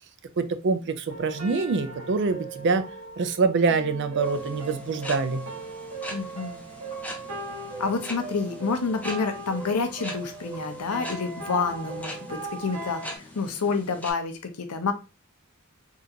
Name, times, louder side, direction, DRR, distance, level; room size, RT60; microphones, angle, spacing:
voice 1, 0.4-2.9 3.2-5.4, right 4 dB, 55° right, 9 dB, 0.4 m, -25 dB
soft piano, 1.1-13.2, right 3 dB, 80° right, 1.0 m, -38 dB
sound 1, 4.2-14.1, left 1 dB, 5° left, 0.5 m, -42 dB
voice 2, 6.1-6.7 7.8-13.0 13.3-14.9, left 4 dB, 85° left, 7 dB, 0.6 m, -28 dB
3.6 x 2.4 x 2.8 m, 0.29 s
head